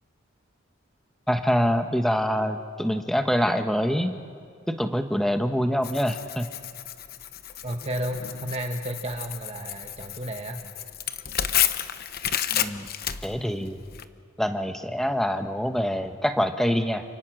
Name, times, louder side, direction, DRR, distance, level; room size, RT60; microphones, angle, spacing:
voice 1, 1.3-4.1 4.7-6.5 12.5-12.9 13.2-13.8 14.4-17.0, equal, ahead, 6 dB, 1.1 m, -25 dB
Tearing, 5.8-14.0, left 10 dB, 50° left, 0.9 m, -31 dB
voice 2, 7.6-10.6, right 1 dB, 30° right, 3 dB, 1.3 m, -32 dB
28.5 x 26.5 x 6.3 m, 2.2 s
head